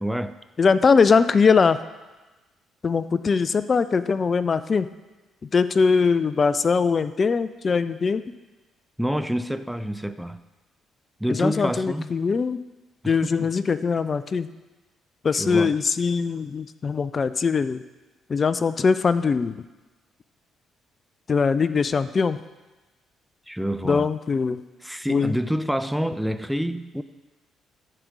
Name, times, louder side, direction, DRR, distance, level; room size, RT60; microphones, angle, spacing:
voice 1, 0.0-0.3 9.0-10.4 11.2-12.1 13.0-13.5 15.3-15.8 23.5-24.1 24.8-27.0, equal, 5° right, 11 dB, 0.6 m, -27 dB
voice 2, 0.6-1.8 2.8-4.9 5.5-8.2 11.4-12.6 13.0-14.5 15.2-17.8 18.3-19.6 21.3-22.4 23.8-24.6 25.1-25.3, left 5 dB, 40° left, 14 dB, 0.4 m, -21 dB
13.5 x 5.1 x 6.2 m, 1.2 s
hypercardioid pair, 45°, 0 cm